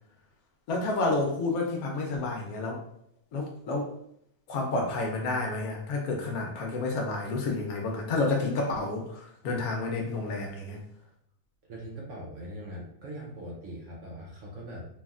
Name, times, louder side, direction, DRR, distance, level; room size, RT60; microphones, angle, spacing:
voice 1, 0.7-2.8 3.3-3.9 4.5-10.8, left 3 dB, 75° left, 1 dB, 1.1 m, -30 dB
voice 2, 11.7-14.9, right 1 dB, 60° right, -2 dB, 0.9 m, -41 dB
3.2 x 2.4 x 2.3 m, 0.69 s
omnidirectional pair, 1.6 m